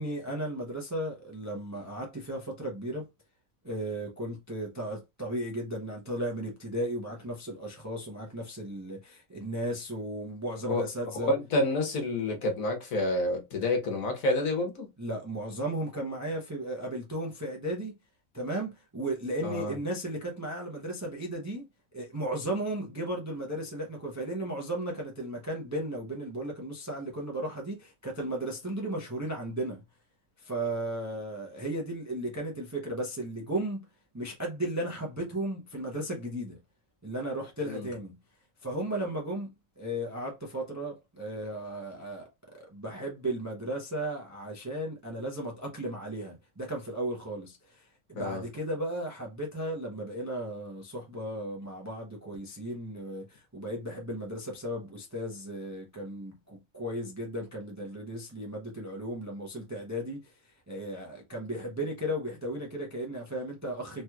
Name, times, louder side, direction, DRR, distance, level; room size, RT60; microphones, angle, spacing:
voice 1, 0.0-3.1 3.6-11.3 15.0-17.9 18.3-21.7 21.9-29.8 30.4-33.9 34.1-36.6 37.0-38.1 38.6-42.3 42.5-64.0, right 1 dB, 20° right, 0.4 m, -35 dB
voice 2, 11.1-14.9 19.4-19.8 37.7-37.9 48.1-48.4, left 2 dB, 75° left, 1.4 m, -29 dB
3.2 x 3.0 x 2.3 m
omnidirectional pair, 1.4 m